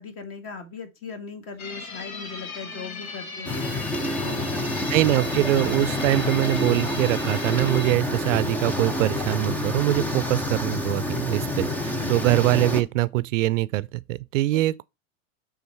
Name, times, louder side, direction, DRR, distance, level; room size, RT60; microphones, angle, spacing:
voice 1, 0.0-4.9 12.0-12.3, left 4 dB, 35° left, 1.9 m, -39 dB
sound 1, 1.6-7.9, left 4 dB, 85° left, 2.1 m, -37 dB
sound 2, 3.5-12.8, left 1 dB, 5° left, 0.4 m, -28 dB
voice 2, 4.9-14.8, right 17 dB, 65° right, 0.5 m, -23 dB
8.1 x 3.9 x 4.5 m
hypercardioid pair, 130°, 41 cm